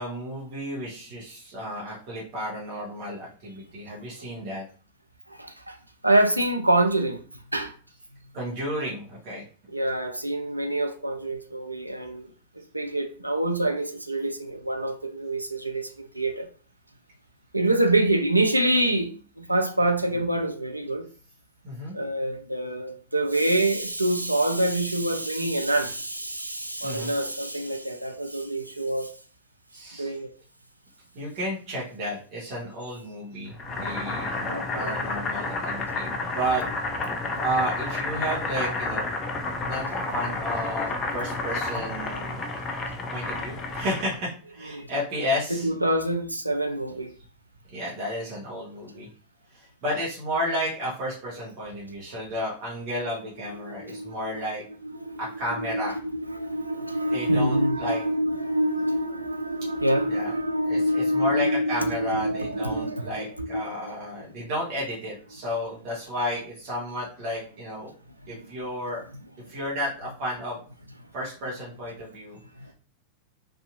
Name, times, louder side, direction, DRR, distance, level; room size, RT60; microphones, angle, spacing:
voice 1, 0.0-4.6 8.3-9.4 21.6-21.9 26.8-27.1 29.7-30.1 31.1-36.6 37.4-39.1 39.5-42.4 43.1-45.7 47.7-49.1 49.5-54.6 55.2-55.9 57.1-58.0 60.1-60.3 60.7-67.9 68.3-69.0 69.5-70.6 71.1-72.4, equal, 40° right, 1.0 m, -32 dB
voice 2, 5.3-5.8 6.0-7.2 7.5-7.7 9.7-12.3 12.7-16.5 17.5-21.1 21.9-29.1 30.0-30.3 34.5-35.0 42.6-42.7 44.6-44.9 45.6-47.1 53.0-54.4 54.8-63.7 68.3-68.5 69.5-69.6, right 1 dB, 85° right, 0.3 m, -26 dB
Boiling, 33.6-44.2, left 3 dB, 25° left, 0.5 m, -30 dB
2.7 x 2.3 x 2.5 m
figure-of-eight pair, 90°, 0 cm